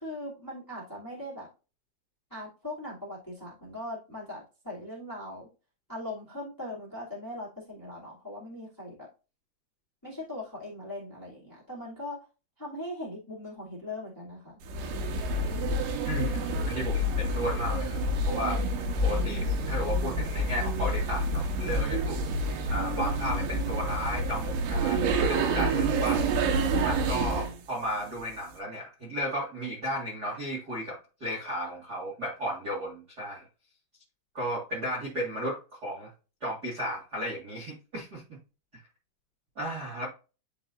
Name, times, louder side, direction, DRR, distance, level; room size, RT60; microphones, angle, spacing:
voice 1, 0.0-1.5 2.3-5.5 5.9-9.1 10.0-12.2 12.6-14.6, left 1 dB, 10° left, -6 dB, 1.2 m, -40 dB
sound 1, 14.6-27.6, right 1 dB, 75° right, 3.1 m, -28 dB
voice 2, 16.0-18.6 19.0-22.2 22.7-26.2 26.8-33.5 34.3-36.1 36.4-38.2 39.5-40.1, equal, 55° right, -5 dB, 1.0 m, -34 dB
10.5 x 4.1 x 2.6 m, 0.32 s
omnidirectional pair, 5.4 m